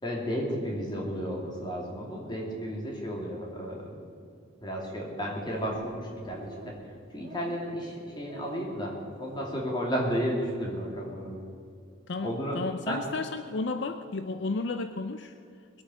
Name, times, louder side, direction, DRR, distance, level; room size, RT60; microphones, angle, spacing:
voice 1, 0.0-4.0 4.6-6.7 7.1-11.4 12.2-12.6 12.9-13.0, equal, 20° left, -2 dB, 2.8 m, -33 dB
sound 1, 5.3-5.9 6.2-6.8 7.2-7.7 8.2-8.7 9.1-9.6 10.0-10.4, right 1 dB, 40° right, 1.7 m, -47 dB
voice 2, 12.1-15.8, left 3 dB, 60° left, 9 dB, 0.5 m, -33 dB
20.5 x 8.5 x 6.4 m, 2.4 s
head